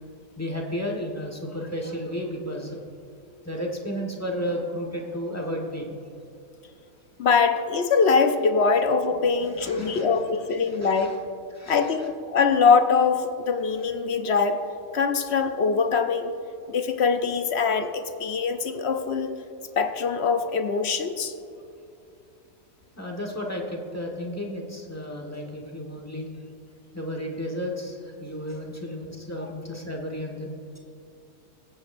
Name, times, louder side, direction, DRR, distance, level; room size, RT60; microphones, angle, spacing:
voice 1, 0.4-3.0 3.4-5.9 9.6-10.2 10.6-11.1 11.5-11.9 23.0-26.3 26.9-30.8, equal, 10° left, 0 dB, 1.3 m, -33 dB
voice 2, 7.2-11.2 11.7-14.6 14.9-16.3 16.7-19.3 19.8-21.3, left 5 dB, 60° left, 7 dB, 0.8 m, -23 dB
21.5 x 9.0 x 2.6 m, 2.6 s
omnidirectional pair, 1.4 m